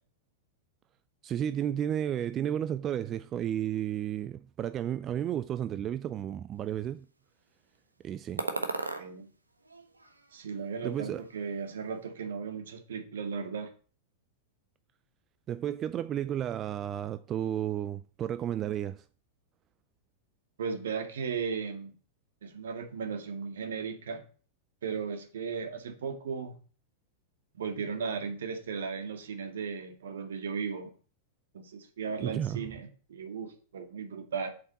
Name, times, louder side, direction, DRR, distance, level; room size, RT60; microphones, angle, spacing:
voice 1, 1.2-7.1 8.0-8.5 10.8-11.2 15.5-19.0 32.2-32.7, right 10 dB, 30° right, 0.4 m, -32 dB
sound 1, 8.4-9.1 9.6-10.6 10.8-11.7, right 3 dB, 90° right, 1.2 m, -37 dB
voice 2, 10.3-13.7 20.6-21.9 22.4-24.2 24.8-26.5 27.5-30.9 31.5-34.5, right 5 dB, 70° right, 1.8 m, -36 dB
7.8 x 5.7 x 7.3 m
figure-of-eight pair, 95°, 0 cm